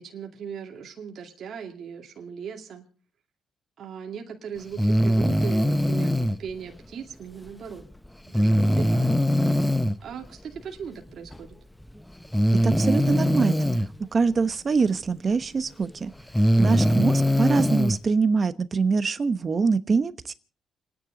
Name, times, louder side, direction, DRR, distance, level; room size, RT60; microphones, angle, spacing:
voice 1, 0.0-2.8 3.8-7.9 8.3-9.2 10.0-11.6 16.5-16.9, right 7 dB, 60° right, 2 dB, 2.4 m, -39 dB
Breathing, 4.8-6.4 8.3-10.0 11.3-11.4 12.3-13.9 15.4-15.5 16.2-18.0, equal, 5° left, 0.7 m, -21 dB
voice 2, 12.6-13.7 14.1-16.1 16.6-20.3, right 4 dB, 40° right, 12 dB, 1.1 m, -24 dB
30.0 x 10.5 x 3.9 m, 0.37 s
cardioid pair, 90°, 0 cm